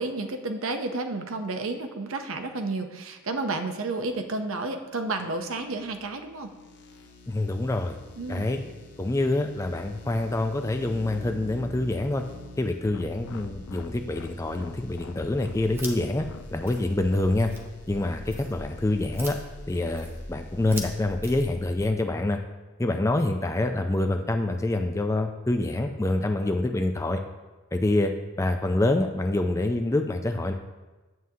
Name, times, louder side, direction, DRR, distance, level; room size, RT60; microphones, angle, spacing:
voice 1, 0.0-6.5 8.2-8.5, right 3 dB, 70° right, 6 dB, 0.7 m, -31 dB
sound 1, 5.2-21.0, left 2 dB, 50° left, 0.8 m, -48 dB
voice 2, 7.3-8.0 8.3-8.6 9.0-12.2 12.6-17.5 17.9-19.4 19.7-22.4 22.8-27.2 27.7-28.1 28.4-30.5, left 2 dB, 15° left, 5 dB, 0.3 m, -26 dB
sound 2, 12.9-19.3, left 3 dB, 85° left, 0.4 m, -46 dB
sound 3, 15.4-21.9, equal, 10° right, 0.7 m, -41 dB
9.3 x 7.6 x 2.8 m, 1.2 s
head